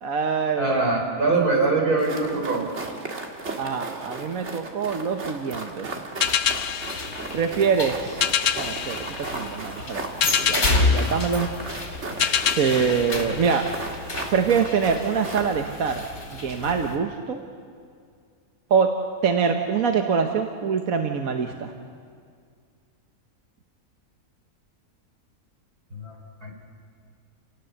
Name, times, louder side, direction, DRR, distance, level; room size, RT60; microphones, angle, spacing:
voice 1, 0.0-0.8 3.6-5.9 7.3-8.2 8.6-9.1 9.3-11.5 12.6-13.7 14.3-17.4 18.7-18.9 19.2-21.7, right 6 dB, 70° right, 4 dB, 1.5 m, -24 dB
voice 2, 0.6-2.7 25.9-26.5, right 3 dB, 85° right, 0 dB, 4.5 m, -23 dB
sound 1, 2.0-15.6, right 3 dB, 50° right, 2.2 m, -36 dB
sound 2, 6.2-17.0, left 3 dB, 85° left, 3.3 m, -30 dB
sound 3, 6.2-14.1, left 9 dB, 65° left, 1.0 m, -28 dB
30.0 x 18.5 x 7.1 m, 2.2 s
omnidirectional pair, 1.6 m